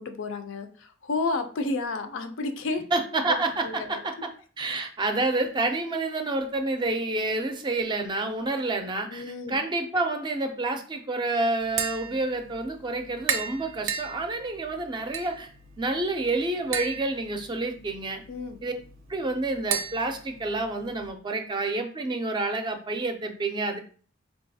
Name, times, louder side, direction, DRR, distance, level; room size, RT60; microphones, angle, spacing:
voice 1, 0.0-2.8 3.3-3.4 3.6-4.0 9.1-9.6 18.3-18.6, left 3 dB, 80° left, 8 dB, 0.4 m, -31 dB
voice 2, 2.9-4.3 4.6-15.5 15.8-18.2 18.6-18.8 19.1-23.8, right 2 dB, 25° right, 6 dB, 0.4 m, -28 dB
Tap, 11.6-21.1, right 7 dB, 90° right, 0.5 m, -36 dB
3.8 x 2.3 x 2.6 m, 0.42 s
head